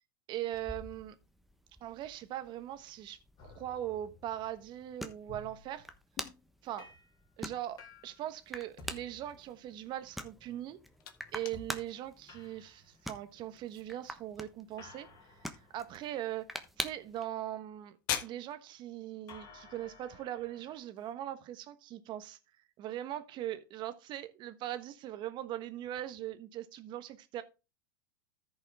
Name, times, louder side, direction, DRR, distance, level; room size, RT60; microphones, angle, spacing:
voice 1, 0.3-1.1 1.8-3.2 3.4-5.9 6.6-6.9 7.4-10.8 11.3-15.1 15.7-16.5 16.8-22.4 22.8-27.4, right 12 dB, 40° right, 1.2 m, -40 dB
sound 1, 0.5-17.2, equal, ahead, 1.1 m, -47 dB
sound 2, 3.4-6.5 6.8-7.1 7.8-8.3 8.8-10.0 11.5-11.9 12.3-13.4 14.8-17.1 19.3-20.8, left 3 dB, 35° left, 3.3 m, -55 dB
sound 3, 10.4-21.1, left 10 dB, 65° left, 1.6 m, -47 dB
14.0 x 5.6 x 3.6 m
hypercardioid pair, 110°, 12 cm